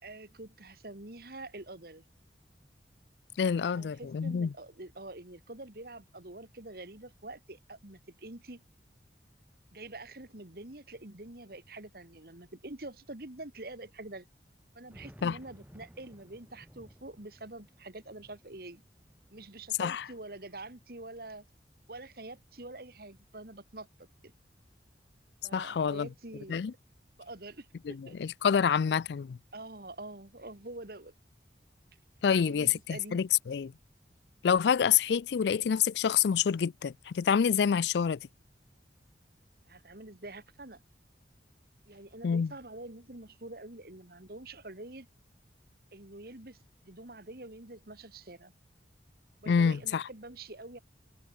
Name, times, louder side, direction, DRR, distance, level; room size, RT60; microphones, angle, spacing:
voice 1, 0.0-2.0 3.7-8.6 9.7-14.3 14.7-18.8 19.3-21.5 21.9-24.3 25.4-26.7 27.2-28.2 28.6-28.8 29.5-31.1 32.3-33.2 39.7-40.8 41.9-45.1 45.9-48.5 49.4-50.8, right 2 dB, 55° right, 2.3 m, -46 dB
voice 2, 3.4-4.5 15.2-15.4 19.8-20.0 25.5-26.1 26.5-26.7 27.9-29.4 32.2-33.7 34.4-38.2 42.2-42.5 49.5-50.0, left 7 dB, 70° left, 0.4 m, -27 dB
sound 1, 11.0-11.1 11.3-11.4 12.2-12.3 12.8-12.9 14.5-20.9 21.3-22.3, equal, 10° right, 4.5 m, -57 dB
head